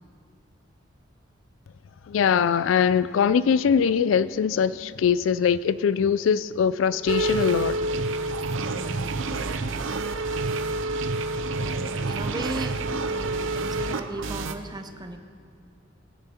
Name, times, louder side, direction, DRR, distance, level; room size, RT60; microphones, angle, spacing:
voice 1, 2.1-7.8, left 7 dB, 85° left, 0.3 m, -22 dB
sound 1, 7.1-14.5, right 2 dB, 85° right, 0.7 m, -28 dB
voice 2, 8.6-9.2 9.6-10.0 11.6-15.2, right 2 dB, 20° right, 0.7 m, -37 dB
20.5 x 9.0 x 4.4 m
head